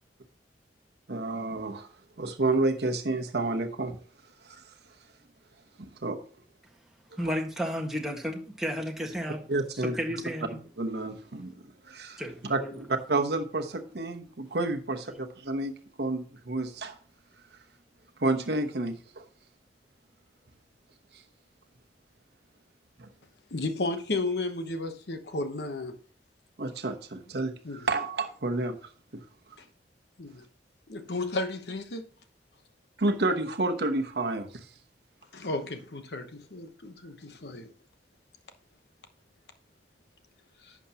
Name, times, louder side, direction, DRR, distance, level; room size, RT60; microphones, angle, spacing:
voice 1, 1.1-1.9 2.2-4.0 4.4-4.7 5.8-6.2 9.5-10.0 10.8-11.5 11.8-15.7 16.0-17.0 18.2-19.2 21.1-21.2 23.0-23.1 26.6-28.9 33.0-34.7, right 2 dB, 65° right, 1.0 m, -30 dB
voice 2, 7.2-9.5 9.7-10.6 12.2-12.9, equal, ahead, 1.6 m, -33 dB
voice 3, 23.5-26.0 27.6-27.9 29.6-29.7 30.2-30.4 30.9-32.0 35.3-37.7 40.6-40.8, left 2 dB, 70° left, 1.0 m, -33 dB
11.0 x 7.2 x 2.9 m
head